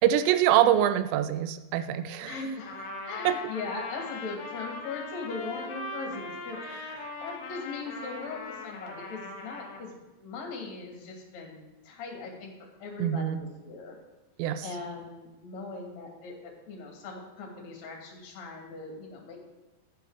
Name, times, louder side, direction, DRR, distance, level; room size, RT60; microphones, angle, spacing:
voice 1, 0.0-2.4 3.2-3.4 13.0-13.4 14.4-14.6, right 11 dB, 90° right, 11 dB, 2.8 m, -24 dB
voice 2, 2.2-6.6 7.2-12.5 12.8-13.9 14.6-19.5, left 3 dB, 45° left, -1 dB, 3.3 m, -39 dB
Trumpet, 2.7-9.9, left 3 dB, 60° left, 2.7 m, -40 dB
11.0 x 9.1 x 4.9 m, 1.0 s
omnidirectional pair, 4.9 m